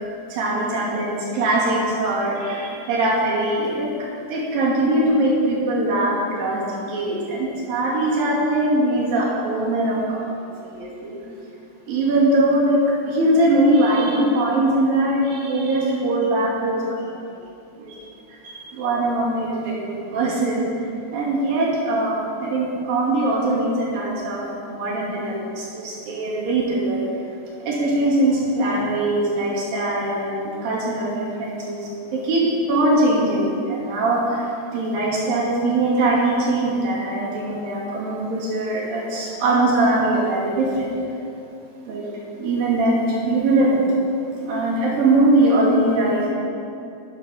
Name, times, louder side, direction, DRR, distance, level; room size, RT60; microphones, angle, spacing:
voice 1, 0.3-11.2 11.9-17.4 17.7-18.0 18.4-20.9 21.1-27.1 27.7-40.9 41.9-42.1 42.4-43.9 44.4-46.3, right 1 dB, 80° right, -6 dB, 4.3 m, -21 dB
13.0 x 9.6 x 5.3 m, 2.7 s
omnidirectional pair, 4.0 m